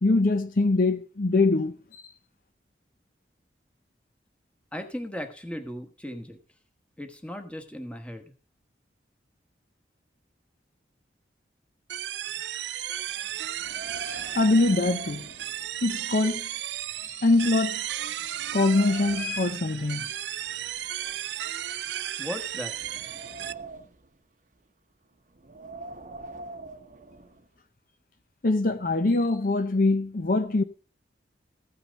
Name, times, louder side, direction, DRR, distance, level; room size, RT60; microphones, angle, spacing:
voice 1, 0.0-2.1 14.0-15.3 15.8-16.5 17.0-17.8 18.5-20.3 28.4-30.6, left 2 dB, 50° left, 0.6 m, -23 dB
voice 2, 4.7-6.4 7.0-8.3 22.2-22.8, left 1 dB, 5° left, 1.2 m, -37 dB
sound 1, 11.9-23.5, right 12 dB, 75° right, 0.4 m, -34 dB
Wind, 13.6-16.2 16.5-16.6 17.3-17.4 17.9-19.5 20.4-21.9 22.5-24.1 25.3-27.5, right 2 dB, 45° right, 0.9 m, -44 dB
15.0 x 5.8 x 5.1 m
head